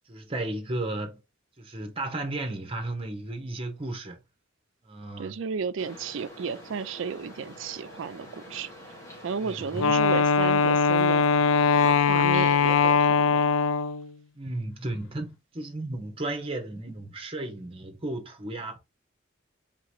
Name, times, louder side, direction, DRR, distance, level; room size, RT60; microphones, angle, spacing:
voice 1, 0.1-1.2 1.6-4.2 4.8-5.4 9.4-9.8 14.3-18.8, right 2 dB, 30° right, 1.0 m, -34 dB
voice 2, 5.2-8.9 9.2-11.5 11.8-13.4, right 5 dB, 70° right, 0.4 m, -33 dB
sound 1, 5.8-12.9, left 1 dB, 15° left, 1.7 m, -46 dB
Wind instrument woodwind instrument, 9.8-14.1, left 5 dB, 80° left, 0.4 m, -21 dB
3.8 x 3.6 x 3.1 m
head